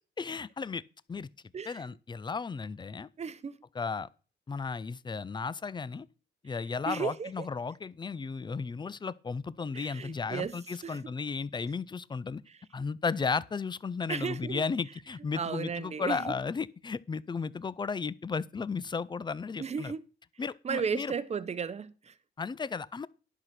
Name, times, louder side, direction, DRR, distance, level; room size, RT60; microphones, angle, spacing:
voice 1, 0.2-0.8 1.1-1.3 1.7-3.1 3.7-4.1 4.5-6.1 6.4-12.4 12.7-19.9 20.4-21.1 22.4-23.1, left 5 dB, 25° left, 0.5 m, -34 dB
voice 2, 3.2-3.6 6.9-7.5 9.7-11.0 14.1-14.6 15.3-16.3 19.6-20.0 20.6-22.1, right 6 dB, 35° right, 0.8 m, -34 dB
11.0 x 6.0 x 5.9 m
cardioid pair, 90°, 20 cm